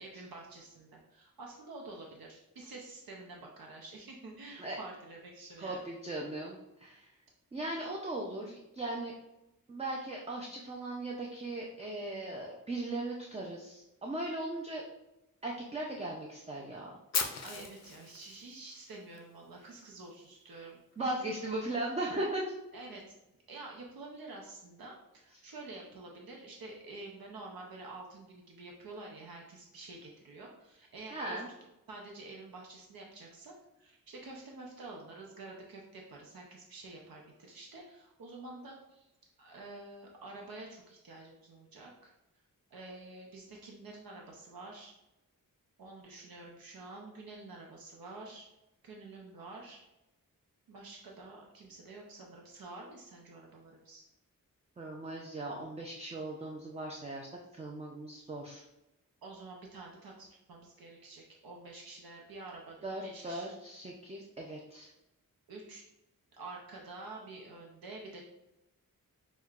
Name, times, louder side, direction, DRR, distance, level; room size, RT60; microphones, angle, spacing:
voice 1, 0.0-5.8 17.4-20.8 22.7-23.0 23.5-31.4 31.9-39.1 39.4-42.1 42.7-44.9 45.8-48.5 48.8-49.8 50.7-54.0 59.2-63.5 65.5-65.8 66.3-68.2, right 2 dB, 85° right, -1 dB, 0.7 m, -48 dB
voice 2, 5.6-7.1 7.5-9.1 9.7-14.8 15.4-16.9 21.0-22.6 31.1-31.5 54.8-57.3 57.5-58.6 62.8-64.9, right 2 dB, 20° right, -1 dB, 0.4 m, -38 dB
Fire, 17.1-19.2, left 6 dB, 50° left, 0.5 m, -36 dB
6.1 x 2.2 x 2.4 m, 0.92 s
wide cardioid pair, 120°, 34 cm